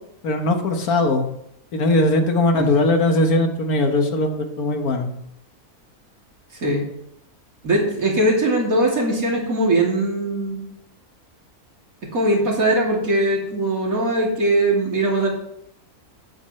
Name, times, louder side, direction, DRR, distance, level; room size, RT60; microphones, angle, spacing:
voice 1, 0.2-1.3 1.7-5.1, left 2 dB, 75° left, 5 dB, 1.7 m, -20 dB
voice 2, 7.6-10.6 12.1-15.3, right 1 dB, 65° right, -3 dB, 3.3 m, -20 dB
12.0 x 9.8 x 3.2 m, 0.75 s
omnidirectional pair, 1.6 m